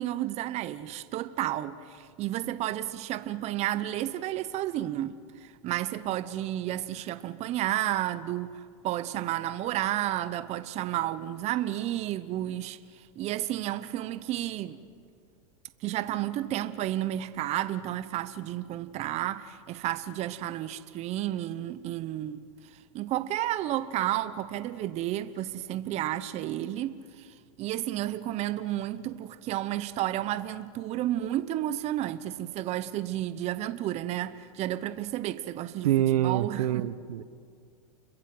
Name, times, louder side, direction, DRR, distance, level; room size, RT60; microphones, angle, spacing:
voice 1, 0.0-14.8 15.8-27.3 27.6-35.9 36.2-36.9, right 13 dB, 35° right, 1.0 m, -32 dB
voice 2, 35.8-37.2, right 12 dB, 75° right, 1.2 m, -26 dB
30.0 x 22.5 x 7.8 m
hypercardioid pair, 125°, 19 cm